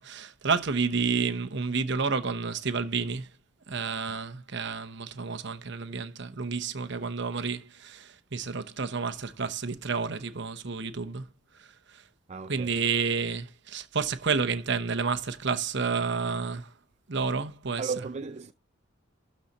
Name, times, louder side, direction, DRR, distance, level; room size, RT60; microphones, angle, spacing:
voice 1, 0.0-3.3 3.7-11.2 11.5-12.0 12.5-16.7 17.1-17.8, right 5 dB, 60° right, 0.9 m, -30 dB
voice 2, 12.3-12.7 17.8-18.5, right 5 dB, 35° right, 0.4 m, -35 dB
12.5 x 4.3 x 4.2 m
head